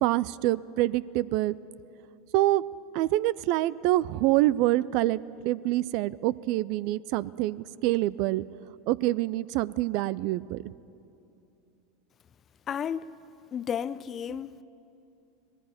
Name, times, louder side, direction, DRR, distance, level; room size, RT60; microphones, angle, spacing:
voice 1, 0.0-1.6 2.3-2.6 2.9-8.4 8.9-10.6, right 16 dB, 55° right, 0.4 m, -26 dB
voice 2, 12.7-13.1 13.5-14.6, left 8 dB, 35° left, 0.6 m, -32 dB
19.0 x 15.0 x 9.6 m
hypercardioid pair, 85°, 0 cm